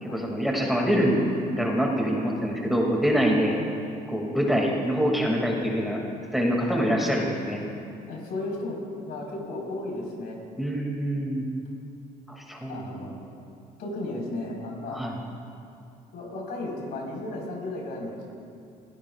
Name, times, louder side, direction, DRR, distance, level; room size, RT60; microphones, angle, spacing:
voice 1, 0.0-3.6 4.1-6.0 6.3-7.6 10.6-11.5 12.3-13.2 14.9-15.2, equal, ahead, -2 dB, 2.4 m, -25 dB
voice 2, 8.1-8.8 9.1-10.4 12.7-13.1 13.8-15.0 16.1-18.2, left 2 dB, 70° left, -2 dB, 4.6 m, -34 dB
28.0 x 16.5 x 2.5 m, 2.5 s
cardioid pair, 110°, 17 cm